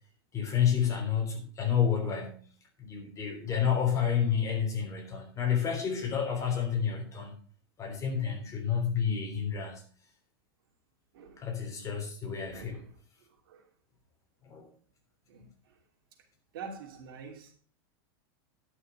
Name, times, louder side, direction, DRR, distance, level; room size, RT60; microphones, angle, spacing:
voice 1, 0.3-2.4 2.8-7.3 7.8-9.8 11.4-12.8 14.4-14.7, left 8 dB, 25° left, 3 dB, 3.4 m, -30 dB
voice 2, 11.1-11.5 12.5-12.9 13.4-13.6 15.3-15.8 16.5-17.5, right 5 dB, 75° right, 2 dB, 2.9 m, -46 dB
11.0 x 6.4 x 5.5 m, 0.44 s
supercardioid pair, 125°, 12 cm